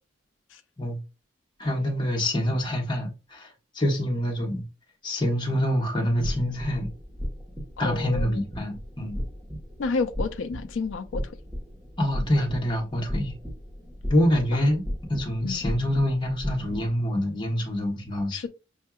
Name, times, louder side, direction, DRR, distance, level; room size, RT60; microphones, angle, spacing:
voice 1, 1.6-4.6 5.0-6.9 7.8-9.2 12.0-13.3 14.1-14.8 15.1-18.5, equal, 25° left, 1.1 m, -26 dB
sound 1, 6.1-16.9, equal, 10° right, 1.1 m, -35 dB
voice 2, 7.8-8.4 9.8-11.2 14.5-14.6 15.4-15.6 18.3-18.5, left 4 dB, 70° left, 0.4 m, -30 dB
5.6 x 2.7 x 2.3 m
head